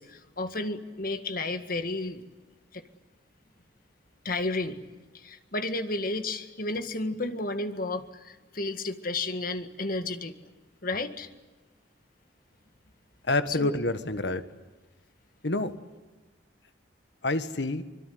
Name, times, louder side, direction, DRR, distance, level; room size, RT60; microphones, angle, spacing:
voice 1, 0.0-2.2 2.7-2.8 4.3-4.8 5.1-10.3 10.8-11.3 13.5-13.7, left 2 dB, 50° left, 8 dB, 1.9 m, -32 dB
voice 2, 13.3-14.4 15.4-15.7 17.2-17.8, left 2 dB, 70° left, 10 dB, 1.6 m, -27 dB
25.0 x 22.5 x 9.4 m, 1.2 s
head